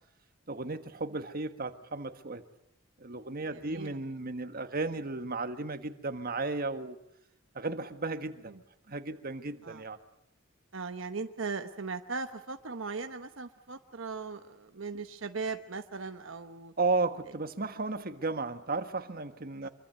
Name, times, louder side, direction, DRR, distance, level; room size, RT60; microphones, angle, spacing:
voice 1, 0.5-2.4 3.0-7.0 7.5-8.6 8.9-10.0 16.8-19.7, right 3 dB, 50° right, 9 dB, 1.5 m, -34 dB
voice 2, 3.5-4.0 8.5-8.6 9.6-9.9 10.7-16.7 19.6-19.7, right 4 dB, 70° right, 7 dB, 1.0 m, -38 dB
25.5 x 24.0 x 8.0 m, 0.74 s
head